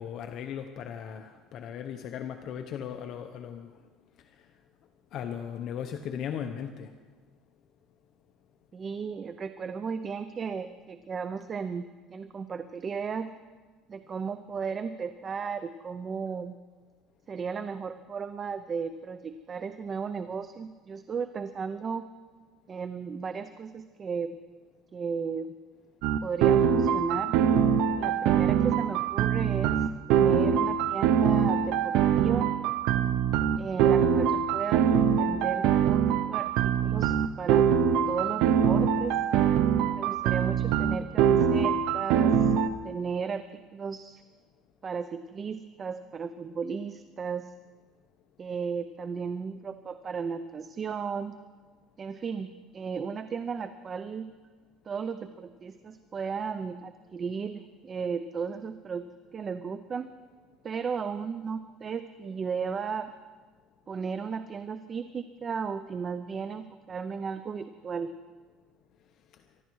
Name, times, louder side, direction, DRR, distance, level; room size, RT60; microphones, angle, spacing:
voice 1, 0.0-3.7 4.4-4.5 5.1-6.9, left 8 dB, 50° left, 6 dB, 0.9 m, -37 dB
voice 2, 8.7-13.3 13.9-16.6 17.3-22.1 22.7-24.4 24.9-25.5 26.2-27.3 28.0-29.8 30.1-32.5 33.6-34.9 35.2-36.0 36.3-37.7 38.1-39.2 39.9-42.5 42.8-43.4 43.7-44.2 44.8-47.5 48.4-51.3 52.0-54.3 54.9-59.0 59.3-60.1 60.6-63.1 63.9-68.1, right 6 dB, 30° right, 11 dB, 0.6 m, -35 dB
sound 1, 26.0-42.7, right 8 dB, 70° right, 0.8 m, -23 dB
24.0 x 12.5 x 4.7 m, 1.4 s
cardioid pair, 130°, 0 cm